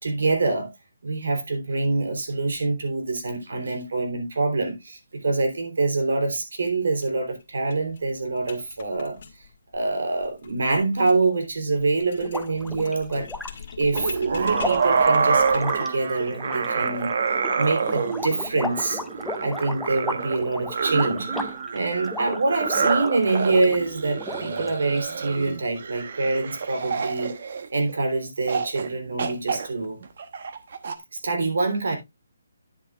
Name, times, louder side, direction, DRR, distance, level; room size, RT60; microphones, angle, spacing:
voice 1, 0.0-0.7 1.0-9.2 9.7-13.3 13.8-17.1 17.5-19.0 19.4-27.4 27.7-30.0 31.2-32.0, right 3 dB, 75° right, 3.3 m, -25 dB
sound 1, 6.9-7.1 7.4-7.5 7.7-15.9, left 5 dB, 45° left, 2.1 m, -42 dB
sound 2, 12.2-23.8 24.2-25.0, left 2 dB, ahead, 0.5 m, -36 dB
sound 3, 13.9-28.0 28.5-28.9 29.2-31.0, right 5 dB, 50° right, 1.1 m, -27 dB
10.0 x 8.5 x 2.4 m
hypercardioid pair, 170°, 0 cm